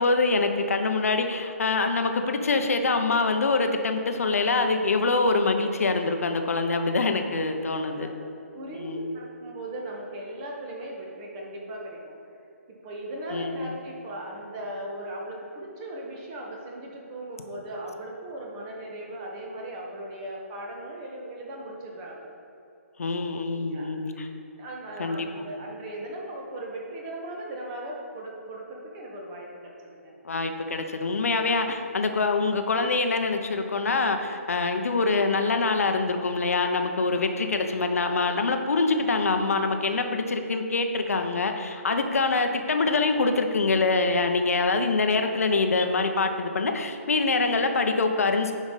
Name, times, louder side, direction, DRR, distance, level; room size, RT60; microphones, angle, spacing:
voice 1, 0.0-8.1 8.8-9.1 13.3-13.7 23.0-24.3 25.0-25.5 30.2-48.5, left 3 dB, 75° left, 6 dB, 0.8 m, -25 dB
voice 2, 8.0-12.2 12.8-22.3 23.5-23.9 24.6-30.1, right 1 dB, 25° right, -1 dB, 1.5 m, -38 dB
9.8 x 5.1 x 4.0 m, 2.7 s
hypercardioid pair, 145°, 8 cm